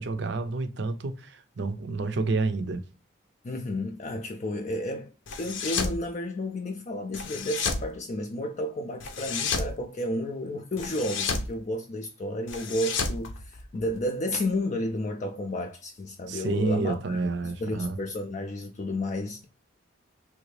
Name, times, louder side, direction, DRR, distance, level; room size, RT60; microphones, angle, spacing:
voice 1, 0.0-2.8 16.3-18.0, right 3 dB, 55° right, 0.5 m, -29 dB
voice 2, 3.4-5.1 5.4-19.5, left 1 dB, 35° left, 0.3 m, -32 dB
sound 1, 5.3-6.0 7.1-7.9 9.0-9.7 10.8-11.5 12.5-14.0, left 4 dB, 70° left, 0.7 m, -31 dB
3.2 x 2.7 x 3.1 m
head